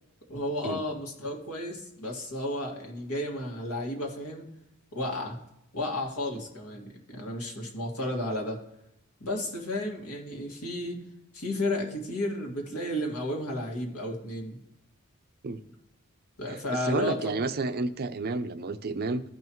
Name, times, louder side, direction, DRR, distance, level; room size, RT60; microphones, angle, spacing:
voice 1, 0.3-4.5 4.9-5.4 5.7-8.6 9.2-11.0 11.3-14.6 16.4-17.3, left 1 dB, 70° left, 1 dB, 2.1 m, -33 dB
voice 2, 16.7-19.2, right 3 dB, 45° right, 11 dB, 0.5 m, -30 dB
14.5 x 5.5 x 3.0 m, 0.83 s
head